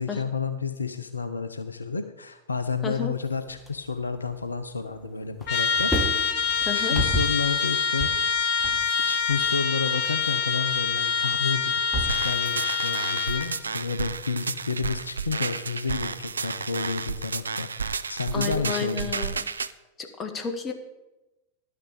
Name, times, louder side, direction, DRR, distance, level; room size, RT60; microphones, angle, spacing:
voice 1, 0.0-5.9 6.7-8.5 9.1-17.7 18.1-19.3, left 5 dB, 80° left, 10 dB, 0.6 m, -31 dB
voice 2, 2.8-3.1 6.6-6.9 18.3-19.4 20.0-20.7, left 5 dB, 25° left, 5 dB, 1.5 m, -32 dB
sound 1, 3.5-5.0 5.3-12.3, right 1 dB, 5° left, 1.6 m, -34 dB
Trumpet, 5.5-13.5, left 6 dB, 40° left, 1.2 m, -25 dB
sound 2, 12.1-19.7, right 5 dB, 75° right, 0.4 m, -32 dB
11.5 x 6.7 x 6.7 m, 1.0 s
figure-of-eight pair, 90°, 0 cm